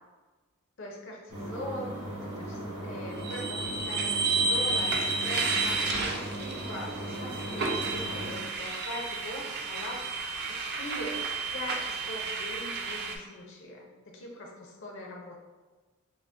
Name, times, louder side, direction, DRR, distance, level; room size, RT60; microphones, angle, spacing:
voice 1, 0.8-1.9 2.2-10.1 10.5-11.2 11.5-15.4, left 1 dB, 60° left, 0 dB, 0.6 m, -41 dB
sound 1, 1.3-8.4, right 1 dB, 75° right, 1.4 m, -38 dB
sound 2, 3.2-13.2, right 4 dB, 45° right, 0.4 m, -31 dB
6.0 x 2.1 x 2.5 m, 1.3 s
head